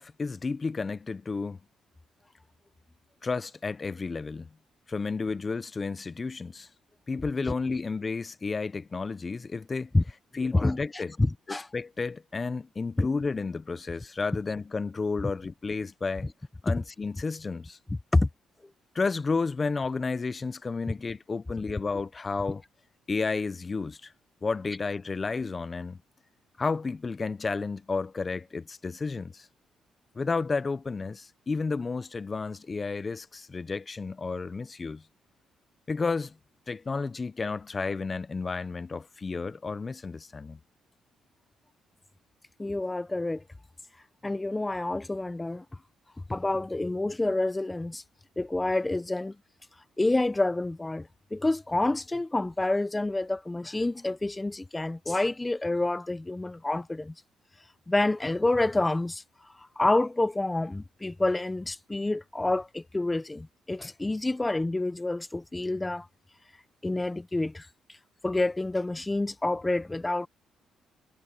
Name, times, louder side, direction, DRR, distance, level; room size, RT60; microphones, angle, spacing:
voice 1, 0.0-1.6 3.2-4.5 4.9-6.7 7.1-9.9 10.3-11.1 11.5-16.3 16.6-17.8 18.9-22.6 23.1-24.1 24.4-26.0 26.6-29.5 30.1-35.0 35.9-36.4 36.7-40.6, left 4 dB, 30° left, 0.8 m, -32 dB
voice 2, 11.2-11.7 13.0-13.1 18.1-18.3 42.6-43.4 44.2-45.6 46.3-48.0 48.4-49.4 50.0-57.1 57.9-59.2 59.8-66.1 66.8-67.7 68.2-70.3, left 2 dB, 15° left, 1.1 m, -28 dB
cardioid pair, 90°, 0 cm